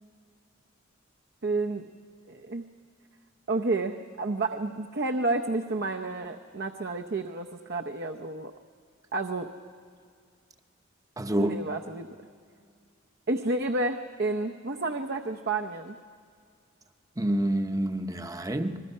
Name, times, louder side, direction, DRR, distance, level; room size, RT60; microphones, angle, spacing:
voice 1, 1.4-1.9 2.3-2.7 3.5-8.5 9.1-9.5 11.4-12.1 13.3-16.0, right 2 dB, 50° right, 4 dB, 0.8 m, -30 dB
voice 2, 11.2-11.6 17.2-18.8, right 1 dB, 15° right, 7 dB, 0.8 m, -27 dB
27.5 x 20.5 x 5.5 m, 2.2 s
head